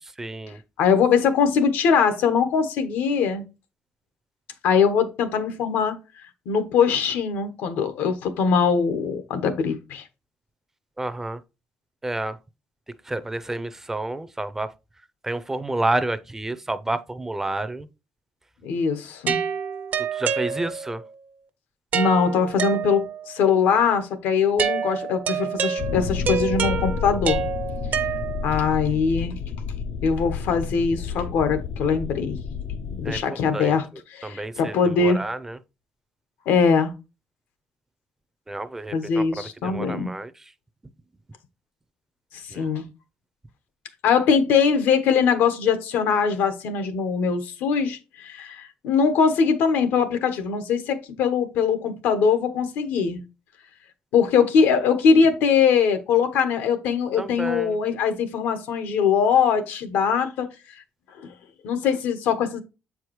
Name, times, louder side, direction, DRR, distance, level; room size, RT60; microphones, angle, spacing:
voice 1, 0.2-0.6 11.0-11.4 12.0-12.4 13.1-14.7 15.2-17.9 20.1-21.0 33.0-33.2 33.5-33.8 34.2-35.6 38.5-39.2 39.6-40.3 42.5-42.6 57.2-57.8, right 2 dB, 10° right, 0.4 m, -29 dB
voice 2, 0.8-3.4 4.6-5.9 6.5-10.0 18.6-19.4 21.9-27.4 28.4-29.4 30.0-32.4 33.0-35.2 36.5-36.9 38.9-40.1 42.3-42.8 44.0-53.2 54.1-60.5 61.2-61.3 61.6-62.6, left 6 dB, 85° left, 1.1 m, -22 dB
sound 1, 19.3-21.0 21.9-23.3 24.6-28.7, right 7 dB, 55° right, 0.6 m, -27 dB
sound 2, 25.8-33.2, left 6 dB, 65° left, 0.5 m, -31 dB
7.7 x 4.7 x 3.0 m
cardioid pair, 130°, 3 cm